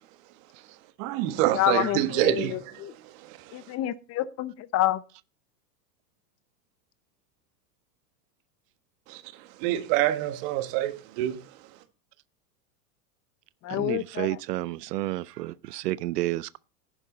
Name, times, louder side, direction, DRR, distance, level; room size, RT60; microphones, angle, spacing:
voice 1, 1.0-2.9 3.2-3.4 9.1-9.2 9.6-11.4, right 14 dB, 55° right, 1.7 m, -26 dB
voice 2, 1.5-2.9 3.5-5.0 13.6-14.4, left 14 dB, 35° left, 0.6 m, -28 dB
voice 3, 13.7-16.6, right 17 dB, 90° right, 0.6 m, -31 dB
11.0 x 10.0 x 4.0 m
supercardioid pair, 120°, 47 cm